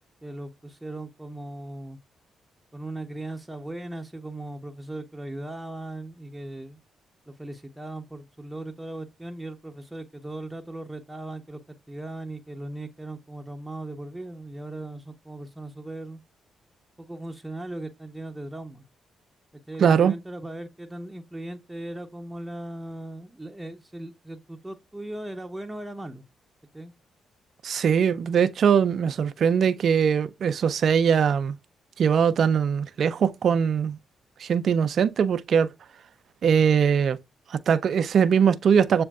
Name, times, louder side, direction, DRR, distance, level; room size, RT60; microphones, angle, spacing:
voice 1, 0.2-2.0 2.7-6.8 7.3-11.6 11.9-16.2 17.0-18.9 19.5-26.2 26.7-26.9, right 1 dB, 10° right, 0.8 m, -38 dB
voice 2, 19.8-20.1 27.6-31.6 32.0-34.0 34.4-35.7 36.4-37.2 37.5-39.0, right 7 dB, 65° right, 0.4 m, -21 dB
7.1 x 2.5 x 2.3 m
supercardioid pair, 50°, 0 cm